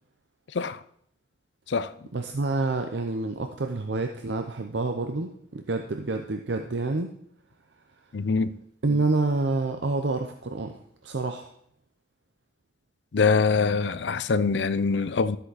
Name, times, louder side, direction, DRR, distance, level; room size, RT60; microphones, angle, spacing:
voice 1, 2.1-7.1 8.8-10.8 11.0-11.5, right 3 dB, 80° right, 0.7 m, -28 dB
voice 2, 8.1-8.5 13.1-15.4, left 4 dB, 80° left, 0.5 m, -24 dB
12.5 x 8.1 x 4.1 m
head